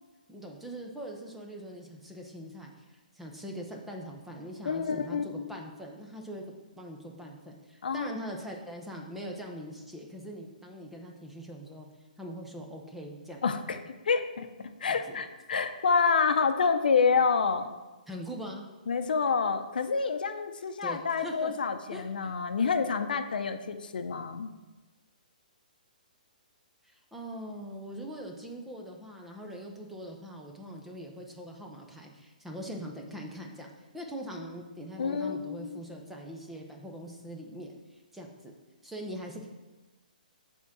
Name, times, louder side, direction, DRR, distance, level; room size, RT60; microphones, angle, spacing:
voice 1, 0.3-6.5 6.8-11.9 12.2-13.4 14.9-15.2 18.1-18.7 20.8-21.5 21.9-22.3 26.8-38.5 38.8-39.5, equal, 5° right, 0 dB, 0.7 m, -42 dB
voice 2, 4.7-5.5 7.8-8.1 13.4-13.8 14.1-14.5 14.8-17.7 18.9-24.5 35.0-35.8, left 5 dB, 80° left, 8 dB, 0.6 m, -28 dB
7.0 x 3.7 x 6.0 m, 1.2 s
hypercardioid pair, 155°, 5 cm